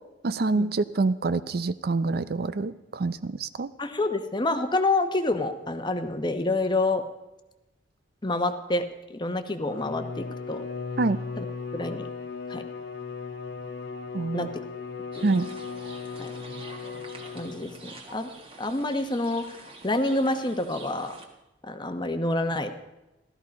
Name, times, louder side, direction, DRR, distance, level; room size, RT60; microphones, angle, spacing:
voice 1, 0.2-3.7 11.0-11.2 14.1-14.5 15.2-15.5, right 3 dB, 55° right, 14 dB, 0.5 m, -26 dB
voice 2, 3.8-7.0 8.2-8.8 9.1-10.6 11.4-11.5 11.7-12.1 12.5-12.6 14.3-14.5 16.2-16.3 17.3-18.3 18.6-19.6 19.8-21.1 21.6-22.7, left 2 dB, 25° left, 8 dB, 1.0 m, -27 dB
Bowed string instrument, 9.6-17.9, left 5 dB, 65° left, 1.1 m, -37 dB
sound 1, 15.1-21.3, right 3 dB, 30° right, 1.7 m, -47 dB
16.0 x 13.5 x 5.2 m, 1.0 s
head